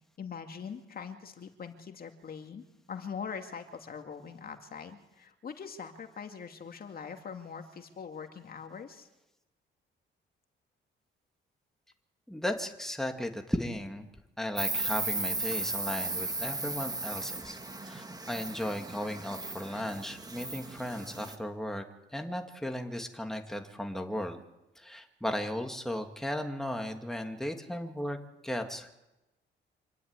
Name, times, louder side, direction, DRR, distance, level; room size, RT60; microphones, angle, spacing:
voice 1, 0.2-9.1, left 6 dB, 50° left, 5 dB, 2.3 m, -42 dB
voice 2, 12.3-14.1 14.4-17.6 17.8-21.8 22.1-24.4 24.8-28.2 28.4-28.9, left 1 dB, ahead, 4 dB, 2.5 m, -35 dB
Insect, 14.6-21.4, right 2 dB, 20° right, 2.3 m, -36 dB
26.5 x 12.0 x 9.9 m, 0.98 s
cardioid pair, 90°, 20 cm